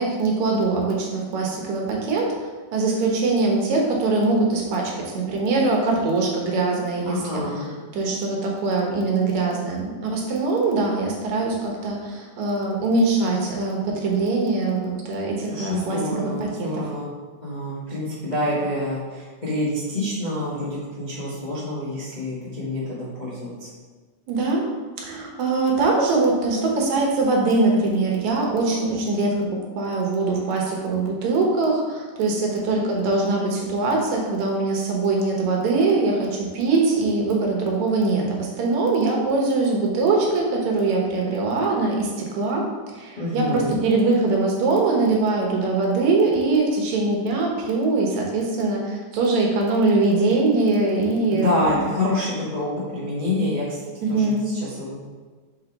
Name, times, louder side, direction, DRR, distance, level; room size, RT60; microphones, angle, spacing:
voice 1, 0.0-2.3 2.7-7.7 7.9-16.0 16.4-16.7 24.3-24.7 25.0-42.6 42.9-51.9 54.0-54.5, right 3 dB, 70° right, -1 dB, 2.3 m, -22 dB
voice 2, 7.0-7.7 15.5-17.1 17.4-23.7 43.2-43.8 51.3-54.9, left 1 dB, 75° left, -9 dB, 0.4 m, -27 dB
6.5 x 4.6 x 3.9 m, 1.4 s
omnidirectional pair, 3.5 m